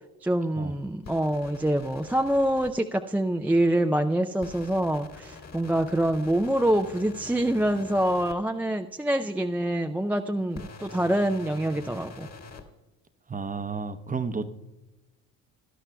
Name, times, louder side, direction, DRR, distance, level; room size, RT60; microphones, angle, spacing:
voice 1, 0.2-12.3, right 1 dB, 5° right, 4 dB, 0.4 m, -25 dB
sound 1, 1.0-2.7 4.4-8.3 10.5-12.6, left 4 dB, 40° left, 1.7 m, -45 dB
voice 2, 13.3-14.5, right 5 dB, 20° right, 11 dB, 0.8 m, -32 dB
17.5 x 11.5 x 2.3 m, 1.1 s
supercardioid pair, 65°, 40 cm